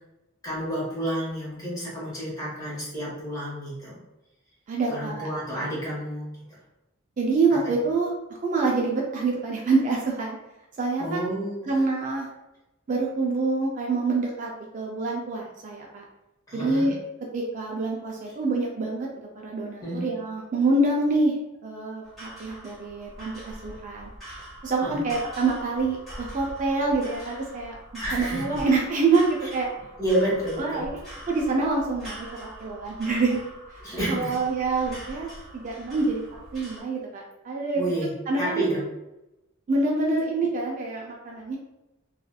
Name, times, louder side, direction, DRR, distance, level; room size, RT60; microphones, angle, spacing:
voice 1, 0.4-4.0 4.9-6.3 11.0-11.7 16.5-16.9 19.8-20.1 24.8-25.0 28.0-28.6 30.0-30.8 33.8-34.3 37.8-38.8, right 1 dB, 20° left, -7 dB, 1.1 m, -30 dB
voice 2, 4.7-5.3 7.2-8.1 8.4-10.4 10.8-11.3 11.7-12.3 12.9-16.0 16.5-16.9 17.3-19.1 19.4-24.1 24.6-29.7 30.6-33.4 34.0-36.2 36.5-37.8 38.3-38.7 39.7-41.6, right 3 dB, 40° right, -2 dB, 0.3 m, -26 dB
sound 1, 22.0-36.8, equal, ahead, 1.3 m, -43 dB
2.7 x 2.4 x 2.2 m, 0.94 s
head